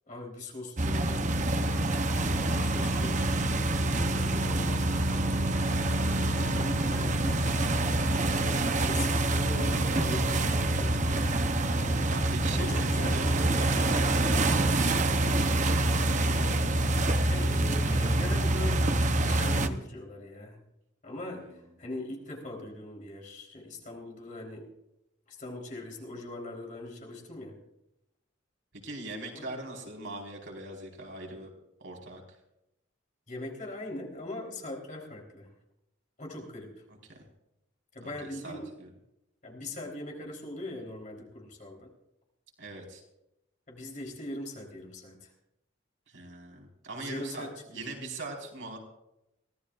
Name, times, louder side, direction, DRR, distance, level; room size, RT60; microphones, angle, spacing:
voice 1, 0.1-7.5 8.3-11.3 12.5-13.5 17.3-18.9 19.2-20.6 21.0-24.7 25.3-27.6 29.3-29.4 33.3-35.5 36.2-36.7 37.9-38.7 39.4-41.9 43.7-45.3 47.0-47.9, left 1 dB, 40° left, -1 dB, 3.9 m, -41 dB
sound 1, 0.8-19.7, right 2 dB, 40° right, 0.8 m, -26 dB
voice 2, 12.1-18.0 21.3-21.5 28.8-31.5 31.8-32.4 37.1-37.3 38.0-38.9 42.6-43.0 46.1-48.8, right 2 dB, 80° right, 0 dB, 4.7 m, -42 dB
24.0 x 17.0 x 2.5 m, 0.87 s
head